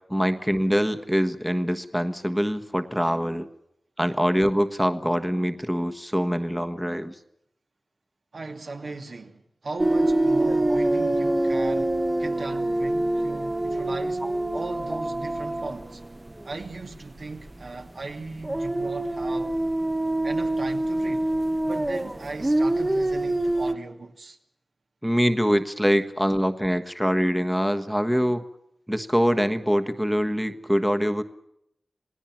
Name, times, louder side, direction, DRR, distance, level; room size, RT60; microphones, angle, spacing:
voice 1, 0.1-3.5 4.0-7.2 10.7-10.8 14.2-14.3 14.9-15.0 25.0-28.4 28.9-31.2, equal, 5° right, 1.4 m, -24 dB
voice 2, 8.3-14.2 14.5-16.0 16.4-19.6 20.2-21.3 21.6-24.4, right 3 dB, 70° right, 2.6 m, -37 dB
sound 1, 9.8-17.2 17.5-17.7 18.4-23.7, right 1 dB, 25° right, 1.1 m, -25 dB
28.0 x 18.5 x 7.5 m
wide cardioid pair, 85°, 0 cm